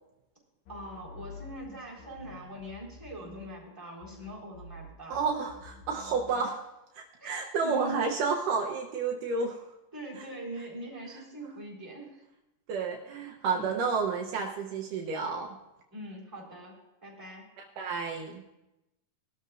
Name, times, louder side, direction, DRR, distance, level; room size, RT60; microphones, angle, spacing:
sound 1, 0.7-3.7 4.0-6.6, left 3 dB, 70° left, 1.8 m, -49 dB
voice 1, 0.7-5.3 7.2-8.0 9.9-12.2 13.5-13.9 15.9-17.5, equal, 5° right, -4 dB, 3.6 m, -42 dB
voice 2, 5.1-6.6 7.0-9.6 10.2-10.3 12.7-15.6 17.8-18.4, right 5 dB, 75° right, 1 dB, 2.3 m, -31 dB
19.0 x 12.5 x 2.5 m, 0.94 s
omnidirectional pair, 3.9 m